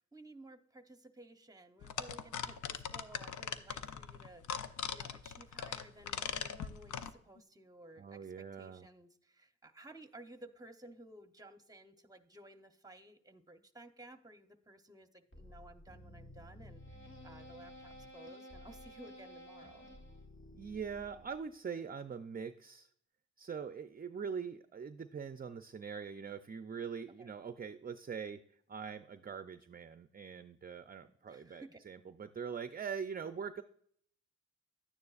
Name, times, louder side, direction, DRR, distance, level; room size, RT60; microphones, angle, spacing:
voice 1, 0.0-19.9 27.2-27.3 31.3-31.8, right 1 dB, 10° right, 9 dB, 0.9 m, -56 dB
sound 1, 1.8-7.1, left 7 dB, 90° left, 0.6 m, -40 dB
voice 2, 8.0-8.9 20.5-22.9 23.4-28.4 28.7-33.6, right 6 dB, 30° right, 10 dB, 0.5 m, -43 dB
sound 2, 15.3-21.6, left 1 dB, 45° left, 2.0 m, -53 dB
11.0 x 9.4 x 2.4 m, 0.64 s
cardioid pair, 75°, 29 cm